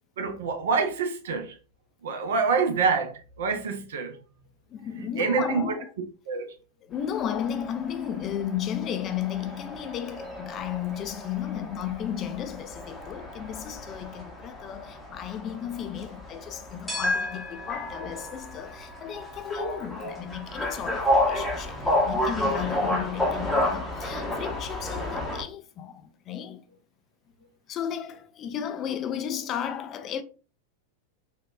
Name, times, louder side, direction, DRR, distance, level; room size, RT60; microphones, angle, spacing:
voice 1, 0.2-1.5 2.0-4.2 5.0-5.6 6.3-6.5, right 5 dB, 60° right, 0.6 m, -26 dB
voice 2, 4.7-5.9 6.8-26.6 27.7-30.2, left 9 dB, 30° left, 0.3 m, -34 dB
sound 1, 7.1-25.4, left 1 dB, 5° left, 0.8 m, -31 dB
3.5 x 2.3 x 2.3 m
figure-of-eight pair, 90°, 0 cm